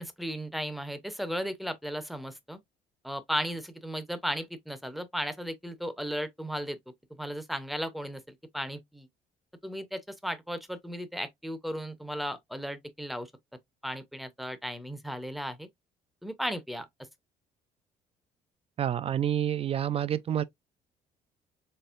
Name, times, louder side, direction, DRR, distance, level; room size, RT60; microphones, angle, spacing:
voice 1, 0.0-2.6 3.0-6.8 7.2-9.1 9.6-13.3 13.8-15.7 16.2-16.9, equal, ahead, 0.7 m, -35 dB
voice 2, 18.8-20.4, right 10 dB, 35° right, 0.4 m, -28 dB
4.4 x 3.1 x 2.4 m
cardioid pair, 110°, 17 cm